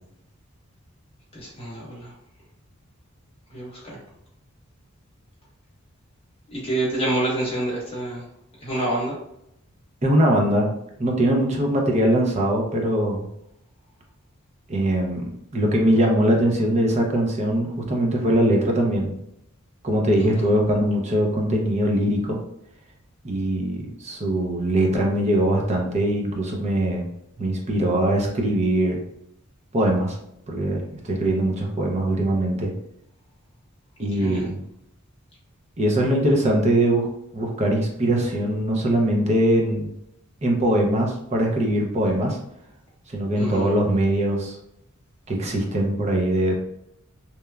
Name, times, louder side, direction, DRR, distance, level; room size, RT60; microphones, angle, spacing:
voice 1, 1.3-2.1 3.5-4.0 6.5-8.2 8.6-9.2 20.1-20.5 34.1-34.5 43.4-43.7, right 1 dB, 30° left, -6 dB, 1.0 m, -28 dB
voice 2, 10.0-10.7 11.0-13.2 14.7-19.2 19.8-22.4 23.2-27.1 27.4-29.0 29.7-30.2 30.5-32.7 34.0-34.6 35.8-37.1 37.3-39.9 40.4-42.4 43.1-44.6 45.3-46.5, right 1 dB, 30° right, 0 dB, 0.5 m, -22 dB
3.0 x 2.2 x 2.3 m, 0.79 s
head